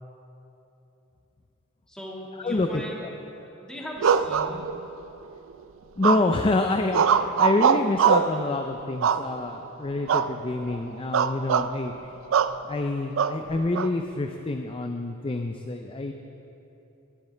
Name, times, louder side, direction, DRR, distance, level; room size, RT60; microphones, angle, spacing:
voice 1, 1.9-3.0 3.4-4.6, equal, 5° left, -4 dB, 1.7 m, -39 dB
voice 2, 2.4-2.8 6.0-11.9 12.7-16.1, left 2 dB, 25° left, 5 dB, 0.4 m, -27 dB
sound 1, 4.0-5.0 6.0-6.5 6.9-8.4 9.0-9.6 10.1-10.3 10.6-10.8 11.1-11.7 12.3-12.6 13.2-13.9, right 7 dB, 70° right, 0.4 m, -22 dB
16.5 x 11.0 x 3.3 m, 3.0 s
head